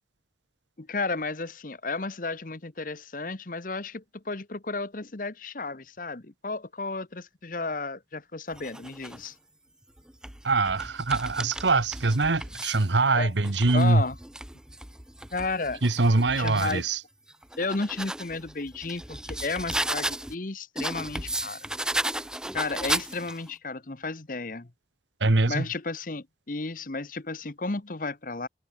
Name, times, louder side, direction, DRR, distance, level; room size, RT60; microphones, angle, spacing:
voice 1, 0.8-9.3 13.1-13.3 13.7-14.2 15.3-15.8 16.3-16.8 17.6-21.6 22.5-24.7 25.5-28.5, left 3 dB, 45° left, 1.1 m, -33 dB
sound 1, 8.5-9.3 10.0-12.9 13.4-16.8 17.3-20.4 20.8-23.5, right 1 dB, 5° right, 0.7 m, -35 dB
voice 2, 10.4-14.0 15.8-17.0 25.2-25.6, right 3 dB, 80° right, 1.3 m, -23 dB
head